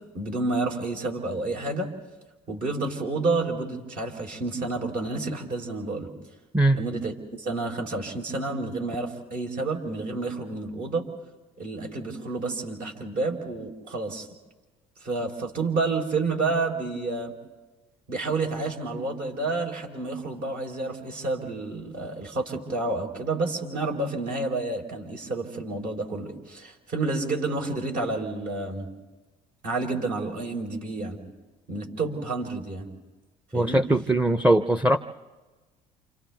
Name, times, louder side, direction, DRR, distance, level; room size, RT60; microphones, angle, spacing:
voice 1, 0.1-1.9 2.5-6.1 6.7-11.0 11.6-14.3 15.0-17.3 18.1-28.9 29.6-31.2 31.7-32.9 33.5-33.8, right 3 dB, 60° right, 1 dB, 4.2 m, -29 dB
voice 2, 33.5-35.0, right 1 dB, 10° right, 11 dB, 0.7 m, -21 dB
29.0 x 28.0 x 3.5 m, 1.2 s
hypercardioid pair, 75°, 16 cm